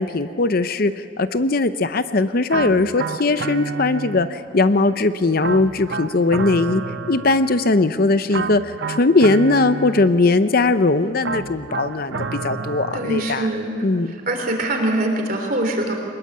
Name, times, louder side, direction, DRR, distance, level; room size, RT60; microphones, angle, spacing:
voice 1, 0.0-6.8 7.1-13.5 13.8-14.1, left 3 dB, 45° left, 12 dB, 0.6 m, -19 dB
sound 1, 2.5-4.6 5.4-7.8 8.3-10.4 11.2-13.6, right 4 dB, 60° right, 0.7 m, -30 dB
voice 2, 12.9-13.7 14.3-15.9, right 1 dB, 45° right, 3 dB, 3.4 m, -23 dB
23.5 x 20.5 x 8.5 m, 2.4 s
head